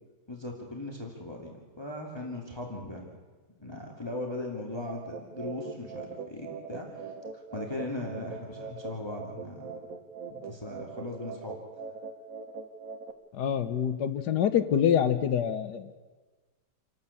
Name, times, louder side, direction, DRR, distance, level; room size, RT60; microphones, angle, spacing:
voice 1, 0.3-3.1 3.6-9.7 10.3-11.6, left 2 dB, 15° left, 0 dB, 2.5 m, -39 dB
sound 1, 4.9-13.1, right 5 dB, 55° right, 1.8 m, -42 dB
voice 2, 13.3-16.0, left 8 dB, 75° left, 11 dB, 1.6 m, -26 dB
28.0 x 12.0 x 8.4 m, 1.3 s
omnidirectional pair, 1.8 m